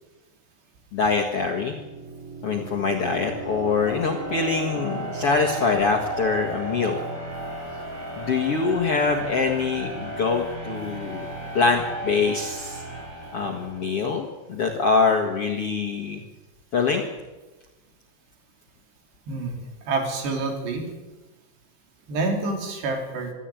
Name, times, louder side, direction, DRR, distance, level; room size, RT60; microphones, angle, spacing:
voice 1, 0.9-1.8 2.4-7.0 8.2-11.2 11.5-12.8 13.3-16.2 16.7-17.1, left 4 dB, 50° left, 0 dB, 1.8 m, -24 dB
sound 1, 1.2-14.1, right 2 dB, 55° right, 8.1 m, -35 dB
voice 2, 19.3-19.6 19.9-20.9 22.1-23.3, right 3 dB, 75° right, 3 dB, 5.4 m, -27 dB
26.0 x 12.0 x 9.1 m, 1.1 s
omnidirectional pair, 4.9 m